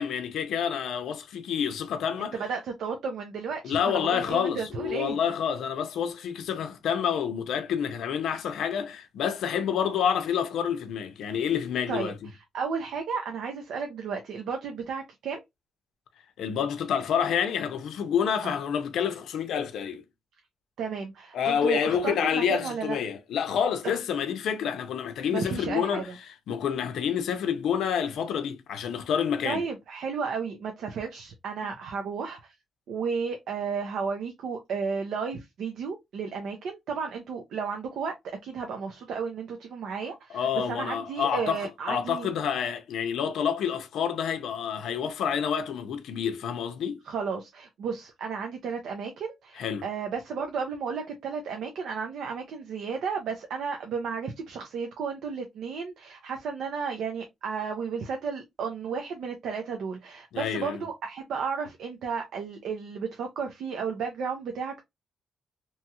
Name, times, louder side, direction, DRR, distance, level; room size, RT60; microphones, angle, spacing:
voice 1, 0.0-2.4 3.6-12.1 16.4-20.0 21.3-26.1 26.5-29.6 31.6-31.7 40.3-47.0 49.6-49.9 60.3-60.8, left 8 dB, 90° left, 0.5 m, -28 dB
voice 2, 2.2-5.2 11.9-12.1 12.5-15.4 18.4-18.6 20.8-23.0 23.8-24.0 25.3-26.2 29.4-32.5 32.9-42.3 47.1-64.8, right 5 dB, 80° right, 0.6 m, -33 dB
2.9 x 2.3 x 2.7 m
cardioid pair, 145°, 0 cm